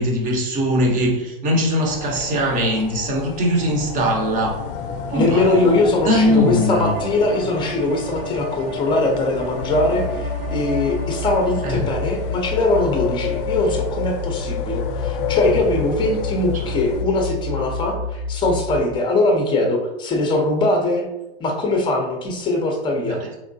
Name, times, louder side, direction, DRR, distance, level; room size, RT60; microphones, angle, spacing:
voice 1, 0.0-4.6 5.1-5.8 6.0-6.9 11.6-11.8 23.1-23.3, equal, 25° right, 0 dB, 0.8 m, -20 dB
sound 1, 1.8-17.0, left 7 dB, 65° left, 0.5 m, -30 dB
voice 2, 5.1-21.1 21.4-23.2, left 2 dB, 15° left, 2 dB, 0.6 m, -21 dB
Bowed string instrument, 6.3-11.9, right 4 dB, 90° right, 0.7 m, -37 dB
sound 2, 9.6-18.8, left 3 dB, 55° right, 0.5 m, -29 dB
3.5 x 3.1 x 2.6 m, 0.97 s
hypercardioid pair, 130°, 30 cm